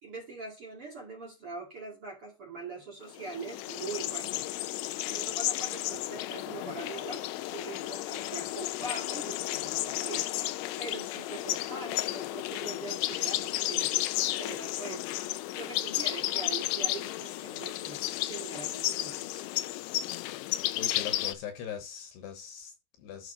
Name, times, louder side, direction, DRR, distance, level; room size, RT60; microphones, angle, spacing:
voice 1, 0.0-4.4 5.1-10.3 10.8-13.9 14.3-15.1 15.5-19.5, right 3 dB, 40° right, 2.3 m, -42 dB
sound 1, 3.1-21.3, left 16 dB, 90° left, 3.1 m, -33 dB
voice 2, 20.8-23.3, left 8 dB, 70° left, 3.2 m, -41 dB
11.5 x 6.2 x 4.0 m
omnidirectional pair, 5.3 m